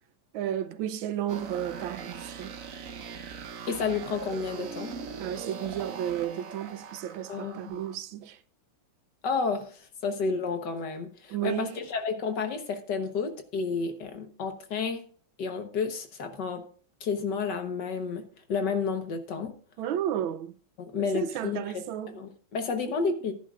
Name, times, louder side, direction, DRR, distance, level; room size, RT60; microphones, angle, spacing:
voice 1, 0.3-2.5 5.2-8.4 11.3-11.8 19.8-20.5 21.0-22.2, right 10 dB, 85° right, 1.5 m, -33 dB
sound 1, 1.3-8.0, right 6 dB, 55° right, 1.1 m, -41 dB
voice 2, 3.7-4.9 7.3-7.7 9.2-15.0 15.4-16.7 17.0-19.5 20.8-23.3, left 5 dB, 65° left, 1.7 m, -31 dB
14.5 x 10.5 x 2.5 m
omnidirectional pair, 2.1 m